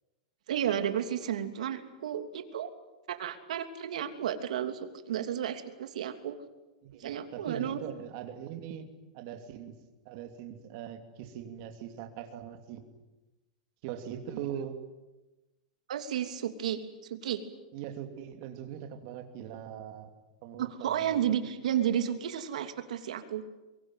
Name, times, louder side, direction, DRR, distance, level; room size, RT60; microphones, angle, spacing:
voice 1, 0.5-2.7 3.1-6.4 7.0-7.8 15.9-17.4 20.6-23.4, right 9 dB, 75° right, 7 dB, 3.0 m, -32 dB
voice 2, 6.8-8.8 9.1-9.7 10.0-12.8 13.8-14.8 17.7-20.1 20.4-21.5, right 9 dB, 35° right, 6 dB, 2.8 m, -41 dB
23.5 x 23.5 x 9.3 m, 1.1 s
supercardioid pair, 180°, 4 cm